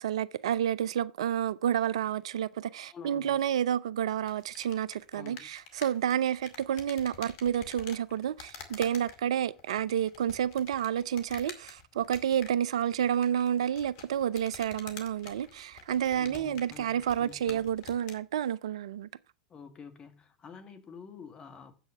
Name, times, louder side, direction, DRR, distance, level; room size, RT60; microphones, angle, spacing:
voice 1, 0.0-19.1, right 9 dB, 70° right, 0.4 m, -30 dB
voice 2, 2.8-3.4 5.1-5.5 16.2-17.7 19.5-21.8, left 6 dB, 30° left, 1.8 m, -48 dB
sound 1, 4.2-18.2, left 6 dB, 55° left, 2.2 m, -49 dB
8.1 x 6.3 x 6.6 m
figure-of-eight pair, 85°, 3 cm